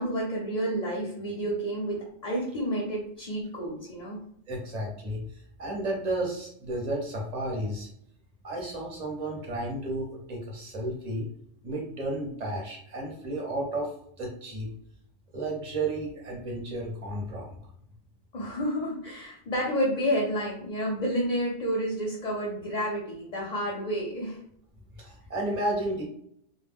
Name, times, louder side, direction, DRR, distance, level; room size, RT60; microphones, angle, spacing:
voice 1, 0.0-4.2 18.3-24.4, equal, 45° left, -3 dB, 0.6 m, -30 dB
voice 2, 4.5-7.9 8.4-11.3 11.6-13.9 14.2-14.7 15.3-17.6 25.0-26.0, right 1 dB, 40° right, -1 dB, 0.7 m, -32 dB
2.1 x 2.1 x 3.4 m, 0.68 s
omnidirectional pair, 1.2 m